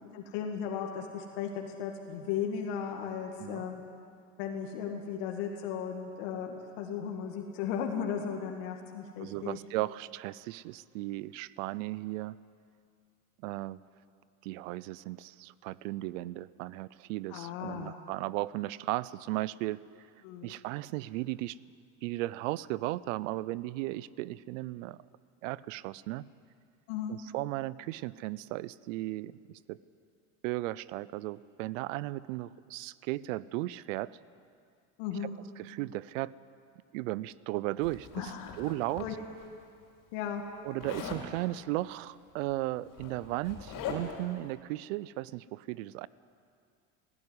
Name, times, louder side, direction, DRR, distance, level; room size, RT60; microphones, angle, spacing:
voice 1, 0.1-3.8 4.4-9.6 17.3-18.0 20.2-20.5 26.9-27.2 35.0-35.4 38.1-38.6 39.0-39.1 40.1-40.4, left 7 dB, 75° left, 2 dB, 2.3 m, -36 dB
voice 2, 9.2-12.4 13.4-13.8 14.4-19.8 20.4-21.6 22.0-25.0 25.4-26.3 27.1-29.8 30.4-34.2 35.6-36.3 36.9-38.3 38.6-39.1 40.6-46.1, right 18 dB, 80° right, 20 dB, 0.7 m, -36 dB
Zipper (clothing), 37.8-39.5 40.8-41.3 42.4-42.5 42.8-44.3, left 7 dB, 55° left, 4.3 m, -41 dB
17.5 x 16.0 x 9.8 m, 2.3 s
supercardioid pair, 100°, 39 cm